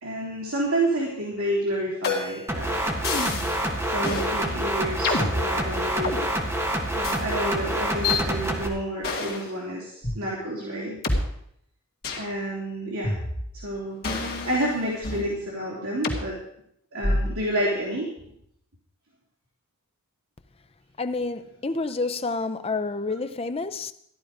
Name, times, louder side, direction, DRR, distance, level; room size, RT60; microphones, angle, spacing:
voice 1, 0.0-3.0 3.8-6.3 6.9-11.0 12.2-13.1 13.5-16.4 16.9-18.1, right 1 dB, 75° right, 3.0 m, -29 dB
sound 1, 2.0-2.5 3.0-3.6 4.0-4.3 5.0-6.2 7.0-7.2 8.0-8.2 9.0-9.5 10.0-10.2 11.0-11.2 12.0-12.3 13.0-13.6 14.0-15.3 16.0-16.2 17.0-17.4, left 3 dB, 45° left, 2.3 m, -28 dB
sound 2, 2.5-8.7, right 1 dB, 10° right, 1.5 m, -27 dB
voice 2, 21.0-23.9, left 3 dB, 25° left, 0.5 m, -29 dB
14.0 x 11.0 x 5.0 m
head